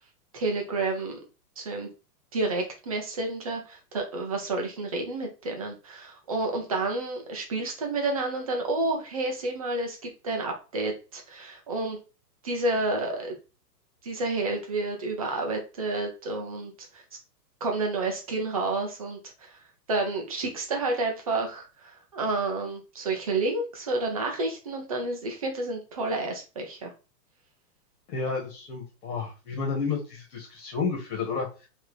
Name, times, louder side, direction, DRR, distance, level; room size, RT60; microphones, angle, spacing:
voice 1, 0.3-1.2 1.6-1.9 2.3-12.0 12.4-13.4 14.0-17.0 17.6-19.6 19.9-26.9, right 2 dB, 25° right, 2 dB, 0.5 m, -30 dB
voice 2, 28.1-31.7, left 5 dB, 60° left, -1 dB, 1.7 m, -31 dB
4.6 x 2.9 x 3.1 m, 0.32 s
hypercardioid pair, 165°, 49 cm